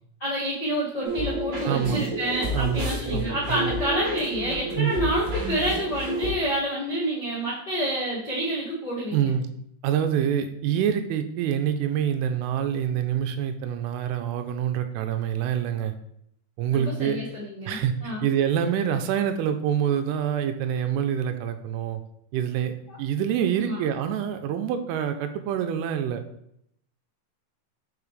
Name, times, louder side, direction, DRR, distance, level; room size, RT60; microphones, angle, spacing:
voice 1, 0.2-9.3 16.7-18.3 22.9-23.0 23.6-23.8, right 1 dB, 85° left, -10 dB, 0.9 m, -28 dB
sound 1, 1.0-6.3, equal, 55° right, 3.6 m, -30 dB
voice 2, 1.6-2.0 2.5-3.7 4.8-4.9 9.1-9.5 9.8-15.9 16.6-17.2 17.7-22.0 22.3-26.2, right 9 dB, 85° right, 7 dB, 3.1 m, -26 dB
6.9 x 5.6 x 3.2 m, 0.74 s
omnidirectional pair, 5.7 m